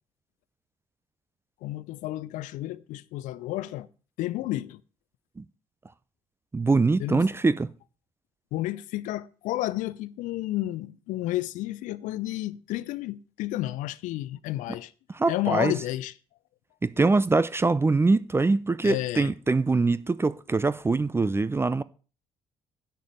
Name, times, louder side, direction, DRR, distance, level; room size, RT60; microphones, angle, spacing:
voice 1, 1.6-3.9 4.2-4.8 7.0-7.3 8.5-14.9 15.3-16.1 18.8-19.3, left 16 dB, 60° left, 0.6 m, -31 dB
voice 2, 6.5-7.7 15.1-15.7 16.8-21.8, right 3 dB, 15° right, 0.5 m, -23 dB
10.5 x 5.2 x 7.6 m
figure-of-eight pair, 50°, 15 cm